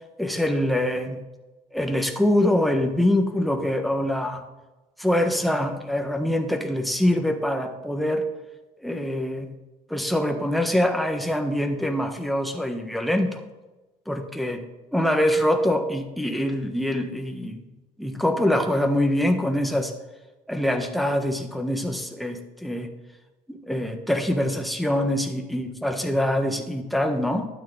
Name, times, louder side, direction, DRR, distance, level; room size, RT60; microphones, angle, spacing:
voice 1, 0.2-1.2 1.7-4.4 5.0-8.2 8.8-9.5 9.9-13.4 14.1-14.6 14.9-17.6 18.0-19.9 20.5-22.9 23.5-27.5, left 1 dB, ahead, 4 dB, 1.4 m, -24 dB
12.0 x 9.5 x 3.9 m, 1.1 s
cardioid pair, 110°, 17 cm